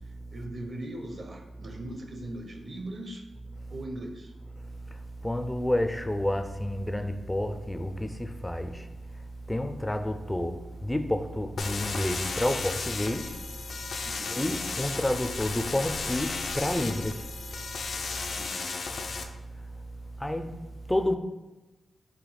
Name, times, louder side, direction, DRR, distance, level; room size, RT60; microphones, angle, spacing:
voice 1, 0.3-3.2 3.7-4.3 14.0-14.3 18.3-18.7, right 1 dB, 45° right, 0.7 m, -39 dB
voice 2, 5.2-8.9 9.5-13.4 14.3-17.3 20.2-20.6 20.9-21.2, left 1 dB, 10° left, 0.4 m, -29 dB
sound 1, 11.6-19.2, left 4 dB, 70° left, 0.4 m, -34 dB
4.9 x 2.7 x 4.0 m
cardioid pair, 80°, 0 cm